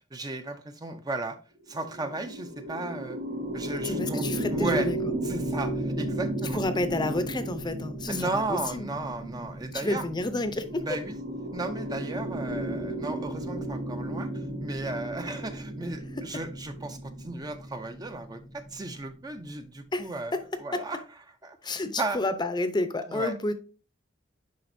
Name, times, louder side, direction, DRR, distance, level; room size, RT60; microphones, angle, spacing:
voice 1, 0.1-1.4 1.7-3.2 3.5-4.9 5.3-6.6 8.1-10.1 10.8-11.2 11.5-20.3 20.6-21.0 21.4-22.2 23.1-23.3, right 2 dB, 20° right, 0.6 m, -35 dB
sound 1, 1.6-19.1, right 1 dB, 70° right, 1.5 m, -34 dB
voice 2, 3.8-5.0 6.5-8.9 9.7-10.9 16.2-16.4 19.9-20.4 20.7-20.8 21.6-23.5, left 2 dB, 25° left, 0.6 m, -30 dB
10.5 x 4.0 x 2.6 m
head